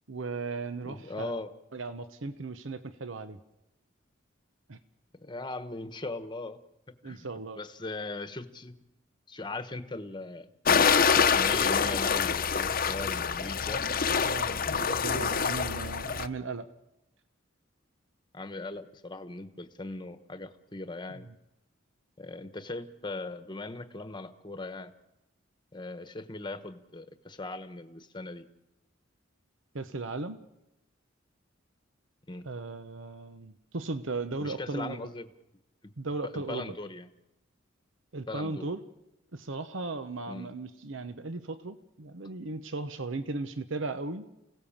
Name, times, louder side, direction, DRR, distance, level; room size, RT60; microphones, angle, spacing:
voice 1, 0.1-1.3 1.7-3.4 4.7-4.8 7.0-7.6 14.2-16.7 21.2-21.3 29.7-30.4 32.4-35.1 36.0-36.7 38.1-38.8 39.3-44.3, right 3 dB, 70° right, 11 dB, 0.9 m, -36 dB
voice 2, 0.8-1.5 5.2-6.6 7.0-8.8 9.3-10.5 11.1-13.8 18.3-21.3 22.2-24.9 25.7-28.4 32.3-32.5 34.4-35.3 35.8-35.9 36.2-37.1 38.3-38.7 40.3-40.5, left 2 dB, 25° left, 9 dB, 1.2 m, -39 dB
sound 1, 10.7-16.3, left 6 dB, 45° left, 0.8 m, -26 dB
28.5 x 17.0 x 7.3 m, 0.95 s
head